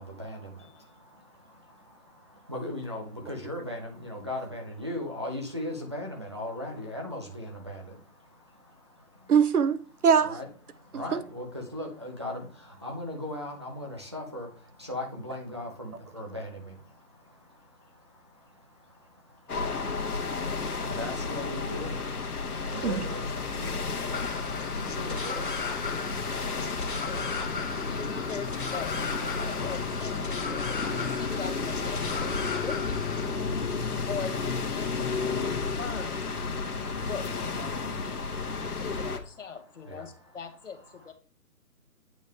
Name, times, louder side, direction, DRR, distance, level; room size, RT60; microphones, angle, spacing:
voice 1, 0.0-9.3 10.2-28.3 39.4-40.4 40.7-41.1, left 1 dB, 20° right, 0.6 m, -41 dB
voice 2, 9.3-10.4 10.9-11.2 22.8-23.0, right 6 dB, 70° right, 0.8 m, -23 dB
sound 1, 19.5-39.2, left 4 dB, 70° left, 1.4 m, -32 dB
sound 2, 24.1-33.3, left 5 dB, 35° left, 0.8 m, -37 dB
voice 3, 26.4-27.3 27.9-28.9 29.3-33.1 34.1-36.4 37.1-38.2 38.8-41.1, left 6 dB, 50° left, 1.1 m, -41 dB
8.7 x 5.3 x 3.3 m
figure-of-eight pair, 160°, 46 cm